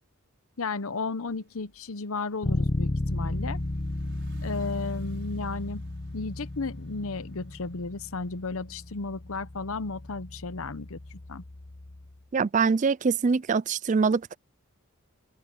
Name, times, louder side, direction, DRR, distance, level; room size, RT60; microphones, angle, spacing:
voice 1, 0.6-3.6 4.4-5.8 6.1-11.4, left 3 dB, 70° left, 0.9 m, -34 dB
sound 1, 1.2-9.5, right 1 dB, 55° right, 6.4 m, -58 dB
Bass guitar, 2.4-12.2, left 1 dB, 30° left, 0.9 m, -34 dB
voice 2, 12.3-14.4, right 5 dB, 35° right, 0.4 m, -24 dB
open air
head